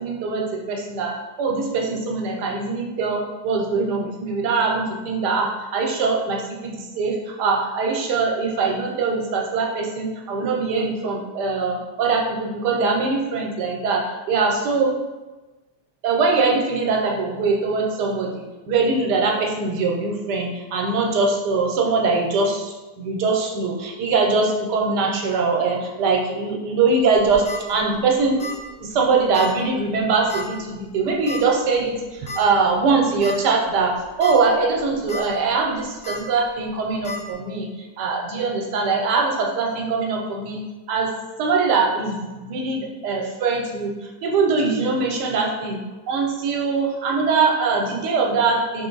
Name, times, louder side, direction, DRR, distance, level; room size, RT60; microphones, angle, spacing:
voice 1, 0.0-14.9 16.0-28.5 28.8-37.7 38.0-40.6 40.9-41.1 41.4-43.9 44.2-45.8 46.1-48.9, right 4 dB, 80° right, 1 dB, 1.2 m, -22 dB
sound 1, 27.1-27.6 28.4-28.7 28.9-29.0 29.3-29.5 30.3-30.6 31.3-31.4 32.3-32.4 32.9-33.0 33.2-33.3 34.0-34.3 34.8-35.2 36.0-36.2 37.0-37.2, left 2 dB, 40° left, 1.2 m, -31 dB
3.6 x 3.0 x 3.8 m, 1.2 s
omnidirectional pair, 1.8 m